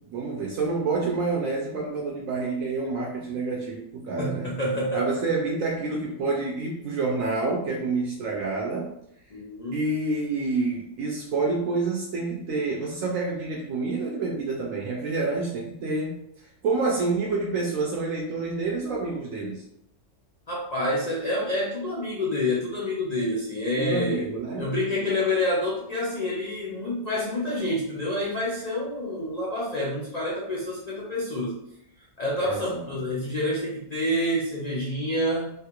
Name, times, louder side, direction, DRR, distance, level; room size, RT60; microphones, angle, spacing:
voice 1, 0.1-4.5 4.9-8.9 9.7-19.6 23.8-24.7 32.4-32.8, right 3 dB, 70° right, -2 dB, 0.9 m, -28 dB
voice 2, 4.2-5.0 9.3-9.8 20.5-24.3 24.6-31.5 32.2-35.5, left 1 dB, 80° left, -6 dB, 0.3 m, -28 dB
3.1 x 2.3 x 2.9 m, 0.78 s
omnidirectional pair, 1.5 m